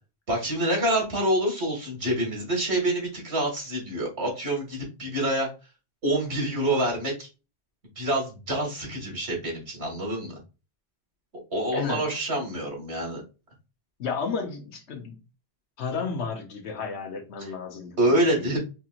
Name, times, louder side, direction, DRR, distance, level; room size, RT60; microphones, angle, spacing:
voice 1, 0.3-5.5 6.0-7.3 8.0-10.3 11.5-13.2 17.4-17.5 18.0-18.6, right 1 dB, 85° right, 2.2 m, -26 dB
voice 2, 11.7-12.2 14.0-15.2 15.8-18.6, left 5 dB, 85° left, 1.1 m, -33 dB
4.7 x 2.9 x 2.5 m
omnidirectional pair, 1.1 m